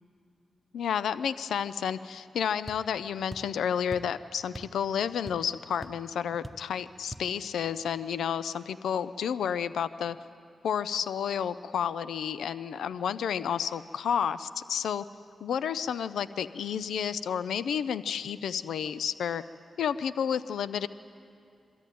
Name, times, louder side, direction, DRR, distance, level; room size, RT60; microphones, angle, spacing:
voice 1, 0.7-10.2 10.6-15.0 15.4-19.4 19.8-20.9, left 8 dB, 85° left, 15 dB, 0.4 m, -31 dB
sound 1, 2.7-2.9 3.3-3.6 3.9-4.1 4.5-4.8 5.0-5.6 5.8-6.0 6.4-6.7 7.1-7.3, right 1 dB, 15° right, 0.9 m, -42 dB
22.5 x 13.5 x 9.1 m, 2.5 s
supercardioid pair, 50°, 0 cm